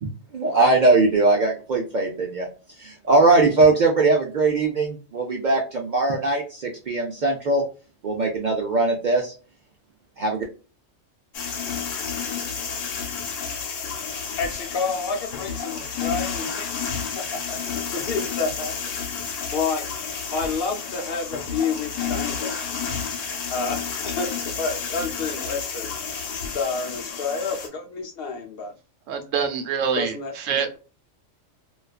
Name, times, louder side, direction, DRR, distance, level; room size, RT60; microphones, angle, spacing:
voice 1, 0.0-2.5 2.8-7.6 8.0-9.3 10.2-10.4, right 3 dB, 60° right, 0 dB, 0.5 m, -20 dB
sound 1, 11.3-27.7, left 6 dB, 80° left, 1.0 m, -31 dB
voice 2, 14.4-19.0 19.5-19.8 20.3-22.6 23.5-25.9 26.3-28.7 30.0-30.3, left 4 dB, 60° left, 2 dB, 0.7 m, -29 dB
voice 3, 29.1-30.8, right 7 dB, 85° right, 7 dB, 1.0 m, -26 dB
2.4 x 2.3 x 2.2 m, 0.34 s
omnidirectional pair, 1.3 m